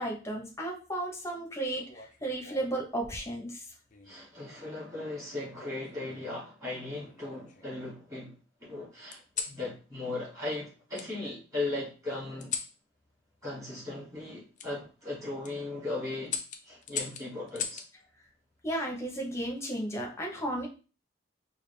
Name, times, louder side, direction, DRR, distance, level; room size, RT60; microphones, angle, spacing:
voice 1, 0.0-3.7 18.6-20.7, right 1 dB, 15° left, 0 dB, 0.9 m, -34 dB
sound 1, 1.7-2.9 3.9-4.3 5.6-6.3 7.0-7.9 9.1-9.6 10.9-11.1 12.4-12.8 14.6-14.7 15.2-15.5 16.3-17.9 19.4-19.8, left 6 dB, 40° left, 0.4 m, -39 dB
voice 2, 4.0-8.3 8.6-12.5 13.4-16.4 16.6-17.8, left 2 dB, 15° right, -7 dB, 2.3 m, -37 dB
4.8 x 2.4 x 3.3 m, 0.35 s
head